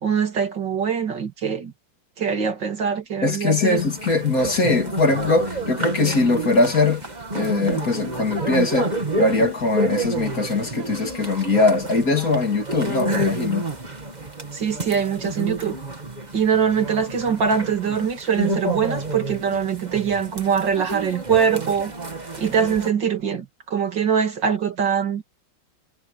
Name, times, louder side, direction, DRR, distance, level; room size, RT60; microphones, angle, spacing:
voice 1, 0.0-1.7 2.2-3.8 14.5-15.8 16.3-21.9 22.4-23.4 23.7-25.3, right 7 dB, 70° right, 3.0 m, -23 dB
voice 2, 3.2-7.0 7.3-13.7, left 3 dB, 50° left, 3.2 m, -21 dB
sound 1, 3.7-22.9, right 2 dB, 25° right, 2.1 m, -30 dB
omnidirectional pair, 2.0 m